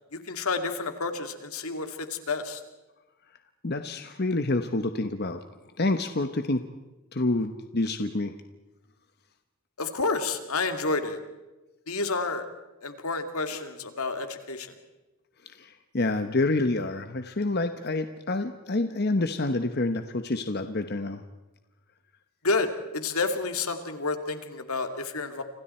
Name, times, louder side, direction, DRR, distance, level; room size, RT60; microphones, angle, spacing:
voice 1, 0.1-2.6 9.8-11.2 11.9-12.5 12.8-14.7 22.4-25.4, left 3 dB, 80° left, 7 dB, 2.4 m, -30 dB
voice 2, 3.6-5.4 5.8-6.7 7.1-8.4 15.4-21.2, left 2 dB, 45° left, 8 dB, 1.0 m, -28 dB
29.5 x 26.0 x 4.4 m, 1.1 s
head